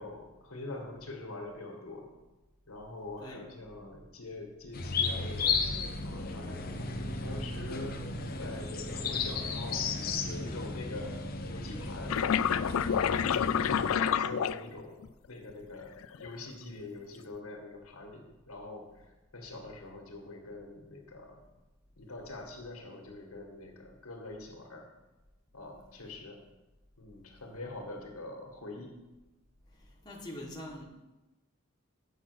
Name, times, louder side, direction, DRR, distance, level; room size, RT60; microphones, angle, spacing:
voice 1, 0.0-2.1 2.7-5.6 6.0-8.0 8.4-9.9 10.2-12.5 12.9-19.1 19.3-21.4 22.0-24.9 25.5-26.4 27.0-28.9, left 2 dB, 85° left, 2 dB, 1.9 m, -44 dB
sound 1, 4.7-14.0, left 4 dB, 45° left, 0.7 m, -34 dB
sound 2, 12.1-15.1 15.9-16.4, left 8 dB, 70° left, 0.3 m, -28 dB
voice 2, 12.9-13.3 30.0-30.9, left 1 dB, 20° left, -2 dB, 1.4 m, -43 dB
7.9 x 6.1 x 6.2 m, 1.1 s
head